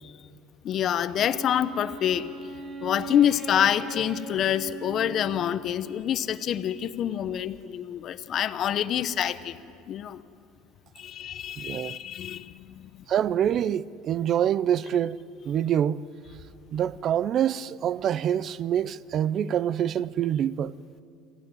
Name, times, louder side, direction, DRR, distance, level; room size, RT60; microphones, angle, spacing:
voice 1, 0.6-2.3 2.8-9.6 9.9-10.2 11.0-13.0, left 10 dB, 40° left, 0.8 m, -27 dB
Wind instrument woodwind instrument, 1.1-5.9, right 2 dB, 20° right, 5.6 m, -40 dB
voice 2, 11.6-12.0 13.1-15.2 15.5-16.0 16.7-20.7, right 10 dB, 40° right, 0.5 m, -26 dB
27.5 x 15.0 x 9.2 m
cardioid pair, 140°, 0 cm